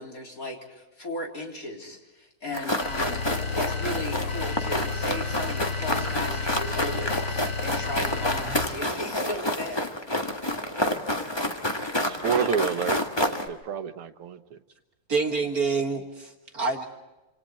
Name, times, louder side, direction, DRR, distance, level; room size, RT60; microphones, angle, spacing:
voice 1, 0.0-9.8, left 1 dB, 40° left, 0 dB, 4.0 m, -36 dB
sound 1, 2.5-13.5, left 1 dB, 15° left, 1.5 m, -29 dB
sound 2, 2.8-8.9, left 4 dB, 85° left, 2.6 m, -32 dB
voice 2, 12.1-14.6, right 7 dB, 80° right, 9 dB, 2.0 m, -29 dB
voice 3, 15.1-16.9, right 4 dB, 45° right, 3 dB, 1.9 m, -27 dB
28.0 x 27.0 x 4.3 m, 1.1 s
omnidirectional pair, 2.4 m